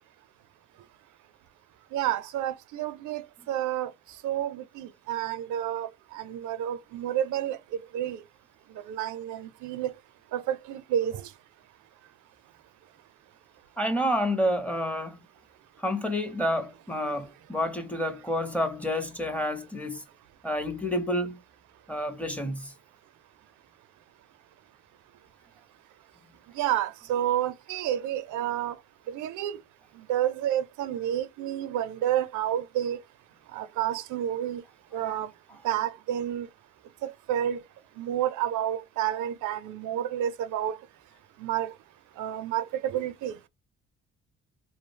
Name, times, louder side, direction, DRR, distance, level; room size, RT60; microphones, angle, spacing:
voice 1, 1.9-3.9 4.2-7.6 7.9-8.2 8.9-9.9 10.3-11.3 26.5-28.8 29.1-29.6 30.0-33.0 33.5-34.6 34.9-35.3 35.6-36.5 37.0-37.6 38.0-40.8 41.4-41.7 42.2-43.4, right 11 dB, 80° right, 0.5 m, -30 dB
voice 2, 13.8-15.2 15.8-20.0 20.4-21.4 21.9-22.7, equal, 5° left, 0.5 m, -29 dB
2.3 x 2.0 x 3.2 m
cardioid pair, 90°, 30 cm